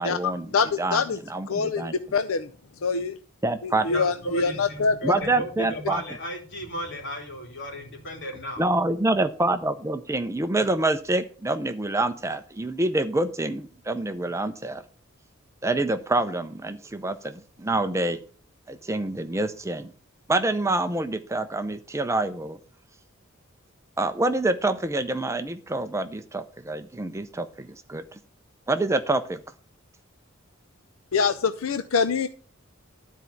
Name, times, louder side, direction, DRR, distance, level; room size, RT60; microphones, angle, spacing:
voice 1, 0.0-0.5 0.8-1.0 1.3-1.9 3.4-3.9 5.0-6.0 8.6-14.8 15.6-18.2 18.7-19.9 20.3-22.6 24.0-28.0 28.7-29.4, right 2 dB, 15° right, 9 dB, 0.5 m, -26 dB
voice 2, 0.5-1.2 1.5-2.5 2.8-3.2 3.6-5.1 31.1-32.3, left 5 dB, 80° left, 11 dB, 0.6 m, -25 dB
voice 3, 3.8-8.6, equal, 60° left, 1 dB, 3.2 m, -35 dB
12.5 x 4.6 x 6.9 m, 0.40 s
head